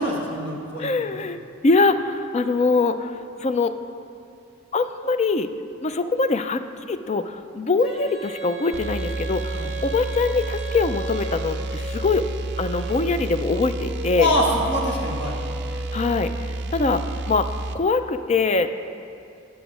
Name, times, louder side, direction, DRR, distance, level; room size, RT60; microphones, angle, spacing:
voice 1, 0.0-1.0 9.5-9.7 14.2-15.4, left 1 dB, 55° left, -3 dB, 1.8 m, -24 dB
voice 2, 0.8-1.4 1.6-3.2 3.4-3.7 4.7-5.5 5.8-6.6 6.9-12.3 12.6-14.3 15.9-16.3 16.7-17.5 17.7-18.7, left 3 dB, 35° left, 10 dB, 0.3 m, -23 dB
Female singing, 7.8-16.6, right 2 dB, ahead, 1.2 m, -36 dB
sound 1, 8.7-17.8, right 2 dB, 55° right, 0.5 m, -30 dB
10.0 x 5.9 x 6.1 m, 2.5 s
head